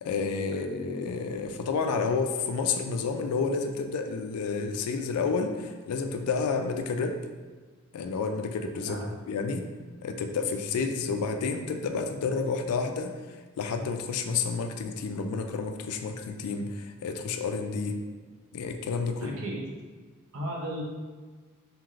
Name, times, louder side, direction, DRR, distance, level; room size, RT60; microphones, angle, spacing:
voice 1, 0.0-7.2 7.9-9.0 9.3-9.6 10.0-13.1 13.6-18.0 18.5-19.4, left 4 dB, 80° left, 6 dB, 0.3 m, -30 dB
voice 2, 19.2-19.7 20.3-20.8, right 1 dB, 65° right, -2 dB, 0.7 m, -34 dB
3.1 x 2.8 x 2.4 m, 1.4 s
head